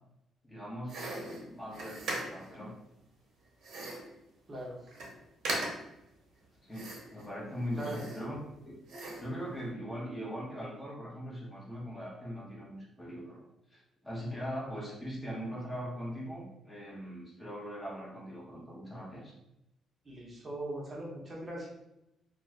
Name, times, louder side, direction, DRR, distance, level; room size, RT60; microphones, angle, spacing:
voice 1, 0.4-2.7 6.6-8.4 8.6-8.8 9.2-19.4, equal, 15° left, -5 dB, 1.0 m, -41 dB
sound 1, 0.9-2.6 3.6-4.1 4.6-4.7 4.9-5.1 5.4-6.0 6.7-7.3 7.7-8.5 8.9-9.3, right 2 dB, 75° right, 0.8 m, -39 dB
voice 2, 20.0-21.7, right 1 dB, 30° right, -3 dB, 0.8 m, -40 dB
2.4 x 2.3 x 3.2 m, 0.87 s
cardioid pair, 90°, 0 cm